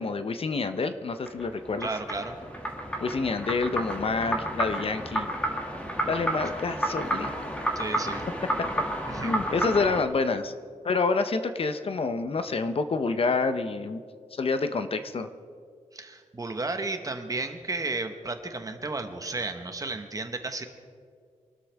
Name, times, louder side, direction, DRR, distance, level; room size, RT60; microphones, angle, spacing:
voice 1, 0.0-1.9 3.0-5.3 6.0-7.3 9.2-10.5 10.8-14.0 14.3-15.3, left 4 dB, 45° left, 9 dB, 0.7 m, -28 dB
sound 1, 1.1-10.0, right 1 dB, 10° left, 2.1 m, -31 dB
voice 2, 1.8-2.3 7.7-8.3 9.1-9.4 15.9-20.7, right 3 dB, 25° right, 6 dB, 1.1 m, -33 dB
25.5 x 12.5 x 3.5 m, 2.2 s
wide cardioid pair, 165°, 13 cm